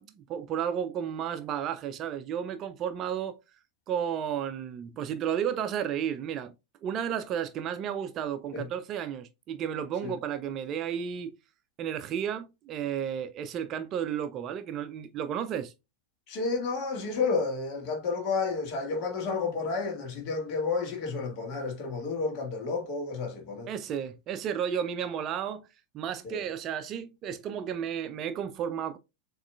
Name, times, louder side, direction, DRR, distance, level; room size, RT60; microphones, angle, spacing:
voice 1, 0.0-3.4 3.9-6.5 6.8-11.3 11.8-15.7 23.7-25.6 25.9-29.0, right 8 dB, 35° right, 0.5 m, -33 dB
voice 2, 16.3-23.7 26.2-26.4, left 4 dB, 40° left, 1.8 m, -31 dB
7.2 x 3.0 x 2.3 m
figure-of-eight pair, 90°, 0 cm